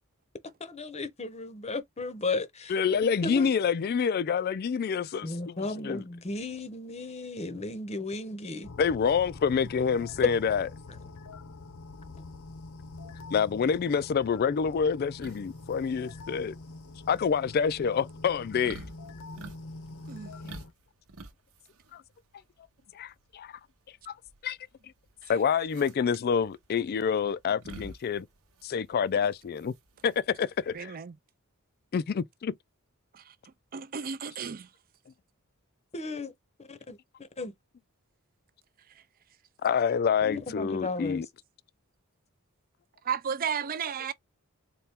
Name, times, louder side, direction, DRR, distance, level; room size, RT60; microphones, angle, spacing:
voice 1, 0.6-3.5 5.2-8.7 10.2-10.3 10.9-11.0 12.1-12.2 35.9-36.3 36.6-37.5 40.2-41.2, left 3 dB, 30° left, 0.7 m, -35 dB
voice 2, 2.7-5.6 5.8-6.0 8.8-10.7 13.3-16.6 17.1-18.8 21.9-22.0 22.9-23.6 24.1-24.2 24.4-24.6 25.3-28.3 28.6-29.7 30.0-31.0 31.9-32.5 39.6-41.3, left 6 dB, 45° left, 0.3 m, -27 dB
sound 1, 8.6-20.7, left 3 dB, 70° left, 0.7 m, -45 dB
sound 2, 15.2-30.8, right 2 dB, 70° right, 0.9 m, -50 dB
voice 3, 30.7-31.1 33.1-33.3 33.7-34.7 43.0-44.1, right 7 dB, 40° right, 0.5 m, -33 dB
4.2 x 2.2 x 3.5 m
head